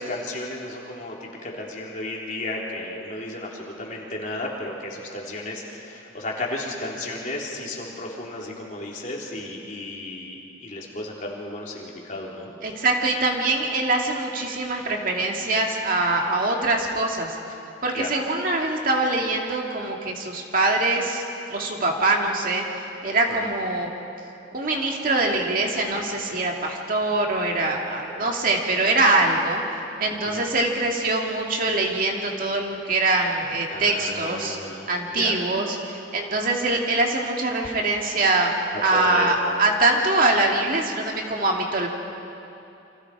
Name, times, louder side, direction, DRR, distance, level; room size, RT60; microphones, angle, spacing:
voice 1, 0.0-12.5 17.9-18.1 30.2-30.4 33.7-35.3 38.9-39.3, left 2 dB, 45° left, -3 dB, 3.6 m, -33 dB
voice 2, 12.6-17.4 17.8-21.2 21.5-22.7 23.0-23.9 24.5-29.6 30.0-34.6 34.9-38.5 38.8-41.9, right 2 dB, 45° right, 0 dB, 2.5 m, -23 dB
29.5 x 26.0 x 4.9 m, 2.8 s
head